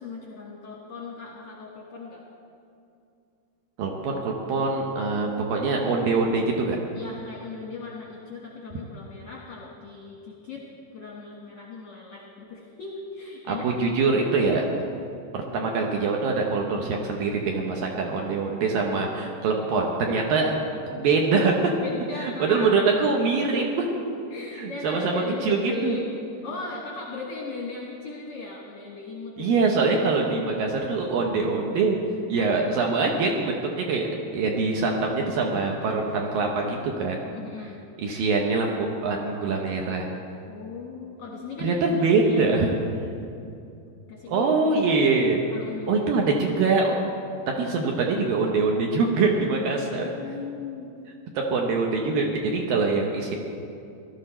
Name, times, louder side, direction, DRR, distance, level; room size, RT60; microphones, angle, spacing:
voice 1, 0.0-2.2 6.9-10.7 10.9-13.7 21.8-22.7 23.4-26.1 26.4-29.7 37.3-37.8 40.5-42.5 44.1-44.5 45.5-46.3 49.9-50.9, left 4 dB, 65° left, -3 dB, 1.6 m, -37 dB
voice 2, 3.8-6.8 13.5-14.7 15.3-20.5 20.9-21.7 22.2-23.6 24.6-26.0 29.4-32.0 32.3-37.2 38.0-40.1 41.6-42.8 44.3-45.4 45.9-46.9 47.5-50.0 51.3-53.4, right 4 dB, 70° right, 0 dB, 2.3 m, -24 dB
17.5 x 12.5 x 4.4 m, 2.6 s
omnidirectional pair, 5.0 m